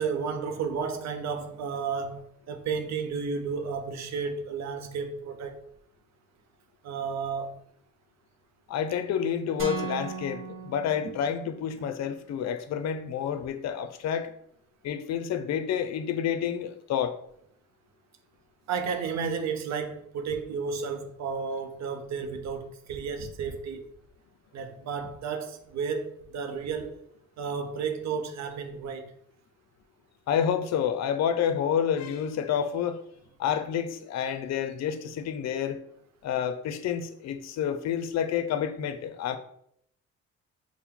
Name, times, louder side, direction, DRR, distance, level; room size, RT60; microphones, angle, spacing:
voice 1, 0.0-5.6 6.8-7.6 18.7-23.8 24.5-26.9 27.4-29.0, right 5 dB, 65° right, 0.6 m, -32 dB
voice 2, 8.7-14.3 14.8-17.1 30.3-33.0 33.4-35.8 36.2-39.4, left 8 dB, 60° left, 0.5 m, -29 dB
sound 1, 9.6-11.7, right 4 dB, 45° right, 1.2 m, -37 dB
4.4 x 2.1 x 3.5 m
cardioid pair, 90°, 30 cm